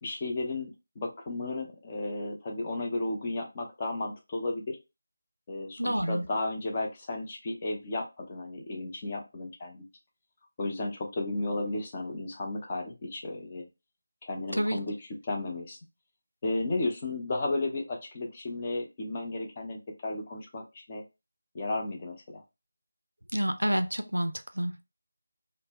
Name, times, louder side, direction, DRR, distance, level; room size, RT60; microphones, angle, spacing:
voice 1, 0.0-4.8 5.5-9.9 10.6-13.7 14.2-15.8 16.4-21.0 21.5-22.4, left 2 dB, 25° left, 0.5 m, -34 dB
voice 2, 5.8-6.3 14.5-14.8 23.3-24.8, equal, 80° right, 0.4 m, -29 dB
2.1 x 2.0 x 3.4 m
figure-of-eight pair, 160°, 0 cm